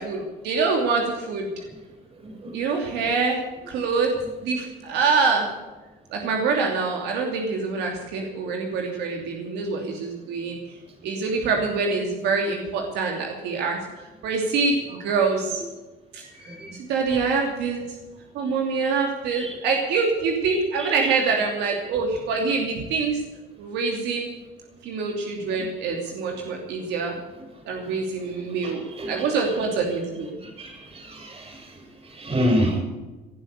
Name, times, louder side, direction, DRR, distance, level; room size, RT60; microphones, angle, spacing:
voice 1, 0.0-1.5 2.5-3.4 3.7-5.5 6.1-10.6 11.0-13.8 14.2-15.6 16.1-16.2 16.9-17.8 18.3-23.2 23.6-24.3 24.8-27.1 27.7-30.4, right 4 dB, 85° right, 1 dB, 2.9 m, -25 dB
voice 2, 28.6-29.1 30.6-31.5 32.2-32.8, equal, 35° right, 2 dB, 7.2 m, -27 dB
18.5 x 11.0 x 6.7 m, 1.2 s
cardioid pair, 110°, 17 cm